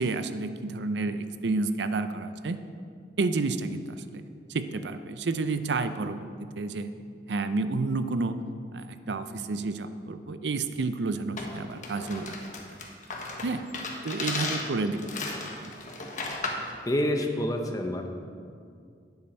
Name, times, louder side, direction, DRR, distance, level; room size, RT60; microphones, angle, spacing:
voice 1, 0.0-2.6 3.2-4.2 4.5-6.3 6.6-6.9 7.3-8.4 8.7-12.4 13.4-13.6 14.0-15.0 15.3-15.7, right 3 dB, 75° right, 10 dB, 0.5 m, -30 dB
sound 1, 11.4-16.7, left 3 dB, 45° left, 1.3 m, -35 dB
voice 2, 16.8-18.1, left 1 dB, 20° left, 4 dB, 0.8 m, -28 dB
11.0 x 9.6 x 4.4 m, 2.3 s
head